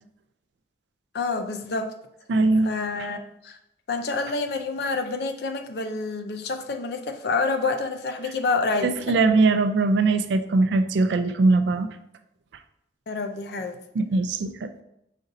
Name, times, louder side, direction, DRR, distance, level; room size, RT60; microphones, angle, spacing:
voice 1, 1.1-1.9 2.6-3.2 3.4-3.6 3.9-9.2 13.1-13.8, left 3 dB, 65° left, 7 dB, 0.5 m, -28 dB
voice 2, 2.3-2.7 8.8-11.9 13.9-14.7, right 3 dB, 80° right, 10 dB, 0.4 m, -21 dB
5.1 x 2.6 x 3.9 m, 0.78 s
head